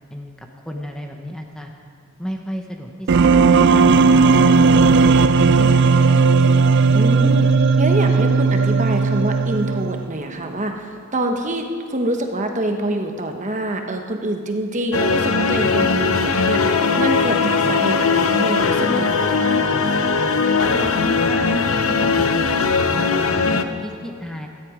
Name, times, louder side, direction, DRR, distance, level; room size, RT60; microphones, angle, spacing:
voice 1, 0.7-1.7 2.2-5.8 20.6-24.5, equal, 5° left, 2 dB, 0.9 m, -32 dB
sound 1, 3.1-10.1, right 4 dB, 50° right, 0.4 m, -15 dB
voice 2, 6.9-19.7, right 1 dB, 35° right, 4 dB, 1.1 m, -25 dB
sound 2, 14.9-23.6, left 4 dB, 70° left, 0.8 m, -19 dB
17.0 x 13.5 x 5.0 m, 2.1 s
head